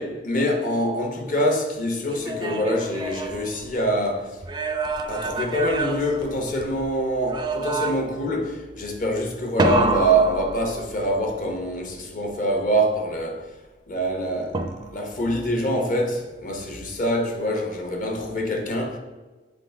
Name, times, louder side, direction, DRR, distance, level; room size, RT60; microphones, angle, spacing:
voice 1, 0.0-4.4 5.1-13.5 13.9-14.6 14.9-19.0, equal, 50° left, 1.0 m, -25 dB
sound 1, 2.1-4.0 4.4-6.8 7.3-8.3 9.6-11.2 14.5-15.2, right 3 dB, 25° right, 0.4 m, -28 dB
7.7 x 3.7 x 3.7 m
head